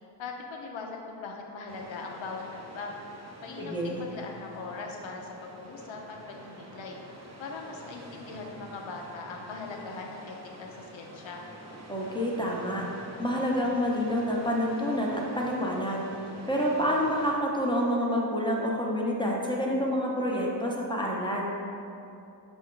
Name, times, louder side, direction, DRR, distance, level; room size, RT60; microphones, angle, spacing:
voice 1, 0.2-3.0 3.4-7.0 7.4-11.4, left 4 dB, 80° left, 1 dB, 0.7 m, -40 dB
sound 1, 1.7-17.3, right 1 dB, 35° right, 0.7 m, -47 dB
voice 2, 3.6-4.0 11.9-16.1 16.5-21.5, equal, 10° left, -3 dB, 0.7 m, -28 dB
5.4 x 2.6 x 3.7 m, 2.7 s
cardioid pair, 65°, 45 cm